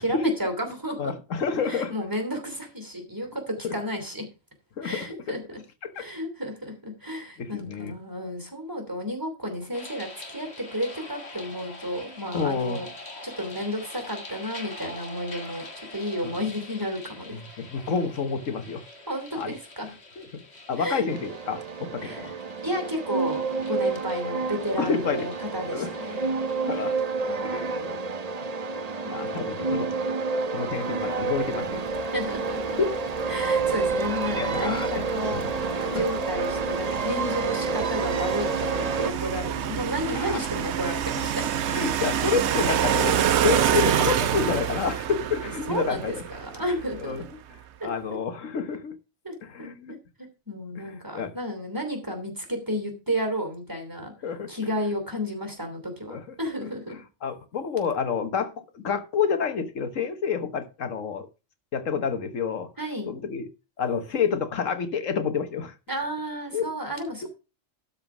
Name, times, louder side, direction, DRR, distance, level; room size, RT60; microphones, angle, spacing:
voice 1, 0.0-1.1 1.7-4.3 4.8-5.6 6.0-12.9 13.2-17.4 19.1-19.9 20.8-21.1 22.0-26.3 27.2-27.8 29.0-29.4 32.1-32.8 33.3-35.4 35.8-41.5 45.7-47.3 47.8-47.9 49.2-49.7 50.5-54.1 54.5-57.0 62.8-63.1 65.9-67.3, equal, 15° right, 5 dB, 2.9 m, -32 dB
voice 2, 1.0-1.9 3.6-3.7 4.8-5.4 5.9-6.0 7.4-7.9 12.3-12.8 16.2-16.4 17.3-18.8 19.3-19.5 19.9-20.4 20.7-22.3 24.8-25.3 25.7-25.9 26.6-26.9 27.2-28.0 28.3-28.5 29.1-29.9 30.5-31.8 32.8-32.9 34.3-34.9 35.3-35.5 35.9-36.0 40.1-40.4 41.7-46.2 47.0-47.2 47.8-48.9 49.4-50.0 50.8-51.3 54.2-54.5 56.1-56.3 57.2-61.3 61.7-62.7 63.1-63.5 63.8-65.7 66.5-66.7, left 6 dB, 80° left, 9 dB, 1.5 m, -29 dB
sound 1, 9.7-26.9, left 2 dB, 55° left, 1.9 m, -45 dB
sound 2, 21.1-39.1, right 4 dB, 40° right, 0.7 m, -29 dB
sound 3, 31.2-47.3, right 9 dB, 65° right, 0.9 m, -28 dB
12.5 x 4.4 x 6.0 m, 0.30 s
omnidirectional pair, 1.3 m